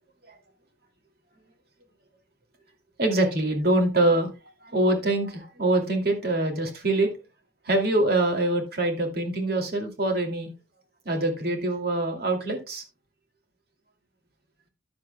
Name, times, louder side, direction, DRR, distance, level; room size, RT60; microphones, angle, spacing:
voice 1, 3.0-4.3 4.6-7.1 7.7-10.5 11.0-12.8, right 2 dB, 55° right, 3 dB, 2.6 m, -24 dB
13.5 x 9.7 x 2.2 m, 0.27 s
head